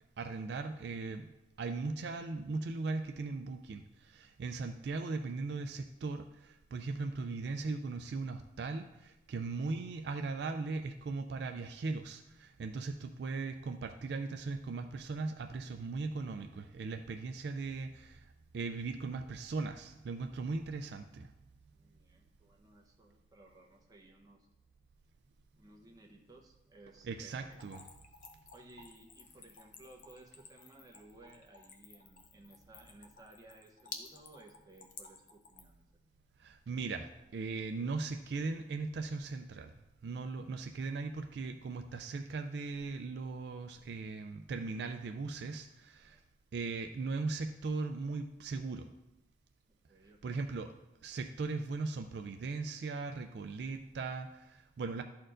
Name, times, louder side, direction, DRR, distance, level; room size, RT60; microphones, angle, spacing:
voice 1, 0.2-1.3 1.6-21.3 27.1-27.8 36.4-39.7 40.0-46.2 46.5-48.9 50.2-50.7 51.0-55.0, right 3 dB, 60° right, 6 dB, 0.3 m, -38 dB
voice 2, 21.7-24.5 25.6-27.6 28.5-35.8 46.0-46.2 49.9-50.5, right 2 dB, 20° right, 0 dB, 0.8 m, -58 dB
Splash splatter / Trickle dribble, 27.5-35.8, left 5 dB, 45° left, 0.6 m, -52 dB
12.5 x 4.3 x 2.5 m, 0.93 s
head